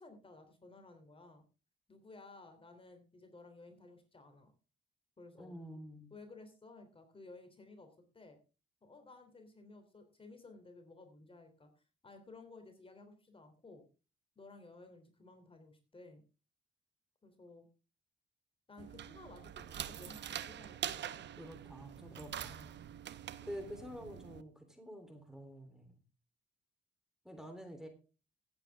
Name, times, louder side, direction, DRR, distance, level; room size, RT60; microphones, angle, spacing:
voice 1, 0.0-1.4 1.9-4.5 5.2-5.6 6.1-7.9 8.1-8.4 8.8-11.7 12.0-13.9 14.3-16.2 17.2-17.7 18.7-21.2 22.3-22.7, left 3 dB, 25° left, 6 dB, 3.3 m, -56 dB
voice 2, 5.3-6.1 21.4-22.6 23.5-26.0 27.2-27.9, equal, 5° right, 6 dB, 3.4 m, -48 dB
sound 1, 18.8-24.4, right 10 dB, 60° right, 0.9 m, -45 dB
16.0 x 9.0 x 3.6 m, 0.33 s
cardioid pair, 90°, 20 cm